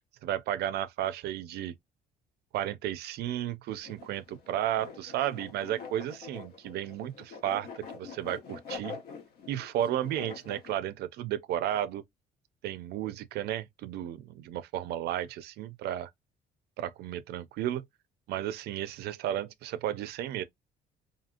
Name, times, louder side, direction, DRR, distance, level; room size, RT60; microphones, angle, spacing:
voice 1, 0.2-1.7 2.5-9.0 9.5-12.0 12.6-16.1 16.8-17.8 18.3-20.4, right 11 dB, 70° right, 0.4 m, -33 dB
sound 1, 3.8-10.7, left 5 dB, 70° left, 0.9 m, -45 dB
2.8 x 2.6 x 2.5 m
cardioid pair, 110°, 17 cm